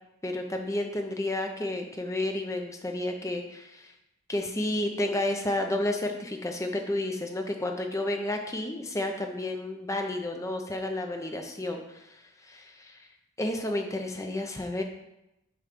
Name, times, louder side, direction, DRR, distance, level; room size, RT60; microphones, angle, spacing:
voice 1, 0.2-3.9 4.3-13.1 13.4-14.8, left 1 dB, 15° left, 4 dB, 0.5 m, -31 dB
6.6 x 3.1 x 5.1 m, 0.89 s
head